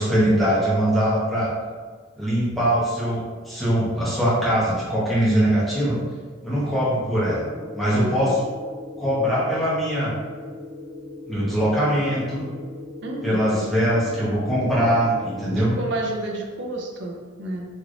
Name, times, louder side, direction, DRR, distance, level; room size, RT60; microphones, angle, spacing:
voice 1, 0.0-1.5 2.2-6.0 6.4-7.5 7.7-8.4 9.0-10.1 11.3-12.5 13.2-15.8, equal, ahead, -10 dB, 1.1 m, -22 dB
sound 1, 7.2-15.6, left 2 dB, 25° right, 0.7 m, -39 dB
voice 2, 7.9-8.3 13.0-13.7 15.6-17.7, right 2 dB, 60° right, 0 dB, 0.5 m, -31 dB
3.2 x 2.9 x 2.5 m, 1.5 s
head